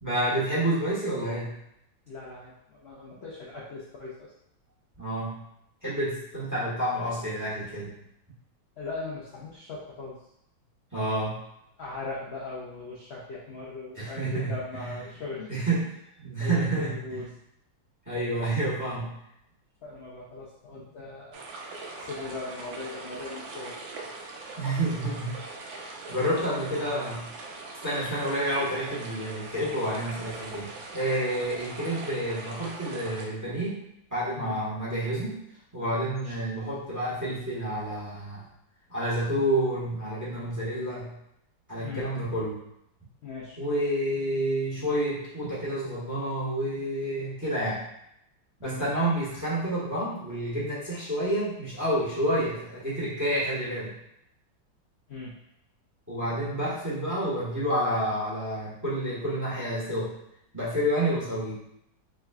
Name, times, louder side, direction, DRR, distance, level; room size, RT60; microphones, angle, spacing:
voice 1, 0.0-1.6 5.0-5.3 5.8-7.9 10.9-11.4 14.0-14.6 15.5-15.8 16.2-17.2 18.1-19.1 24.6-25.4 25.8-27.3 27.8-33.8 34.1-35.4 35.7-38.4 38.9-41.1 41.7-42.6 43.6-47.8 48.6-53.9 56.1-60.1 60.5-61.6, right 1 dB, 10° right, -8 dB, 1.2 m, -29 dB
voice 2, 2.1-4.3 6.4-6.6 8.8-10.2 11.8-15.5 16.4-17.3 19.8-21.6 22.0-23.7 26.1-27.0 28.0-28.1 34.3-34.6 36.2-36.7 41.8-42.1 43.2-43.6 48.6-49.0 52.3-52.4 55.1-55.3, left 3 dB, 60° left, -6 dB, 0.7 m, -39 dB
sound 1, 21.3-33.3, right 3 dB, 80° right, 1.4 m, -41 dB
4.1 x 3.7 x 2.3 m, 0.78 s
omnidirectional pair, 2.0 m